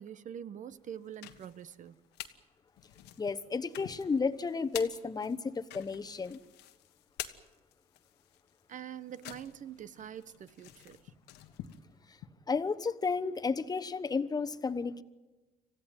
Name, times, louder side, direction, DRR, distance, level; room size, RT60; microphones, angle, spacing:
voice 1, 0.0-2.0 8.7-11.0, right 9 dB, 50° right, 1.0 m, -45 dB
sound 1, 0.9-2.4 2.8-12.3, left 12 dB, 85° left, 1.5 m, -48 dB
voice 2, 3.2-6.4 12.5-15.0, left 4 dB, 25° left, 1.1 m, -32 dB
26.5 x 16.0 x 9.3 m
cardioid pair, 110°, 17 cm